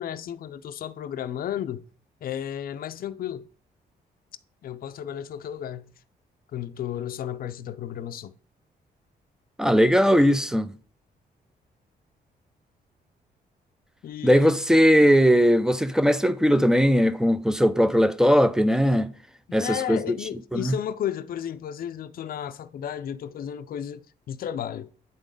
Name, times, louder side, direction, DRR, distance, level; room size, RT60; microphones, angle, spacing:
voice 1, 0.0-1.8 2.2-3.5 4.6-5.9 6.5-8.3 14.0-14.6 19.6-24.9, left 10 dB, 60° left, 0.5 m, -33 dB
voice 2, 9.6-10.7 14.2-19.1 19.5-20.0 20.5-20.7, equal, 5° right, 0.4 m, -19 dB
9.1 x 3.8 x 5.2 m
cardioid pair, 125°, 17 cm